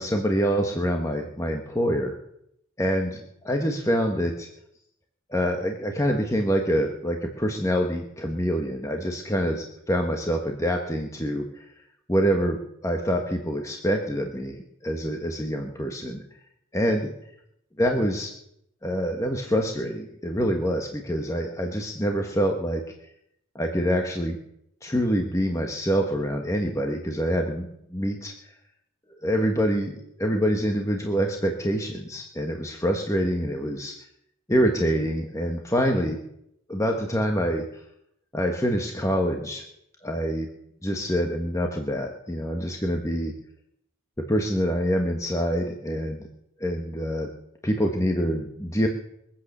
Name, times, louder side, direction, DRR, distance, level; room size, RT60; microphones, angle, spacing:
voice 1, 0.0-2.1 2.8-4.5 5.3-11.6 12.1-12.6 12.8-16.2 16.7-17.1 17.8-18.3 18.8-22.8 23.5-24.4 24.8-28.3 29.2-33.9 34.5-36.2 36.7-37.7 38.3-39.6 40.0-40.5 40.8-43.3 44.3-46.3 46.6-47.3 47.6-48.9, equal, 15° left, 2 dB, 1.4 m, -26 dB
23.0 x 8.7 x 6.7 m, 0.76 s
head